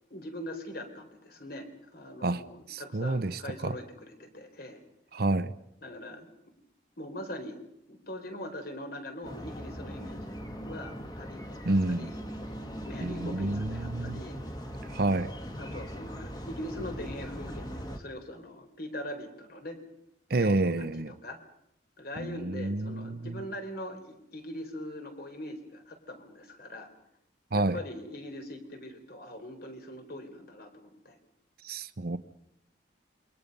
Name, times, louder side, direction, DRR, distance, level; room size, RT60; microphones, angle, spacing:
voice 1, 0.1-4.8 5.8-6.3 7.0-7.6 7.9-10.3 10.7-12.2 12.9-14.4 15.6-19.8 20.3-21.4 22.0-26.9 27.5-31.2 32.1-32.2, left 1 dB, 55° left, 6 dB, 4.0 m, -42 dB
voice 2, 2.7-3.8 5.1-5.5 11.6-12.1 13.0-14.2 14.9-15.3 20.3-21.1 22.2-23.4 27.5-27.8 31.6-32.2, right 2 dB, 55° right, 12 dB, 0.8 m, -29 dB
sound 1, 9.2-18.0, equal, 20° left, 2.0 m, -40 dB
28.5 x 23.0 x 5.4 m, 0.78 s
head